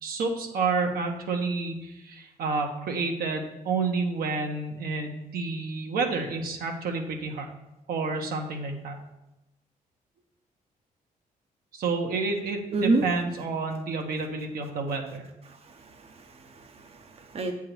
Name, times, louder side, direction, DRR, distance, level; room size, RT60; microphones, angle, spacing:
voice 1, 0.0-7.5 7.9-9.0 11.7-15.3, right 4 dB, 80° right, 2 dB, 1.1 m, -29 dB
voice 2, 12.7-13.0 15.5-17.5, right 3 dB, 40° right, 3 dB, 0.7 m, -29 dB
7.9 x 3.6 x 6.0 m, 0.93 s
cardioid pair, 110°, 15 cm